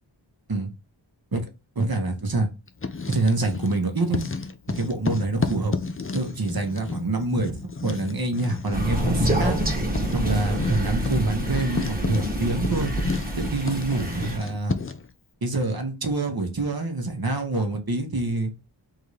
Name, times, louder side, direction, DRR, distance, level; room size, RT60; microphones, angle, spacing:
voice 1, 1.7-2.5 3.1-4.2 4.7-5.7 6.1-9.5 10.1-12.9 13.4-14.8 15.4-18.5, right 2 dB, 50° right, 5 dB, 1.2 m, -26 dB
Writing, 2.7-3.8 4.1-15.1, left 4 dB, 30° left, 0.5 m, -32 dB
Crow, 8.7-14.4, right 1 dB, 20° right, 1.4 m, -26 dB
3.9 x 2.7 x 4.8 m, 0.28 s
wide cardioid pair, 65°, 48 cm